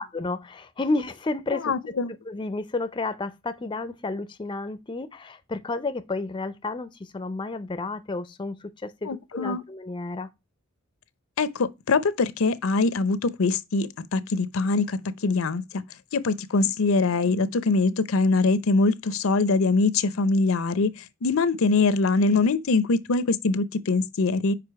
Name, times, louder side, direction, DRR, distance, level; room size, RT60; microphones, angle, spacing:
voice 1, 0.0-1.8 2.2-10.3, left 3 dB, 25° left, 0.5 m, -31 dB
voice 2, 1.6-2.1 9.1-9.6 11.4-15.8 16.1-20.9 21.2-24.5, left 3 dB, 75° left, 0.6 m, -23 dB
5.0 x 5.0 x 4.6 m
head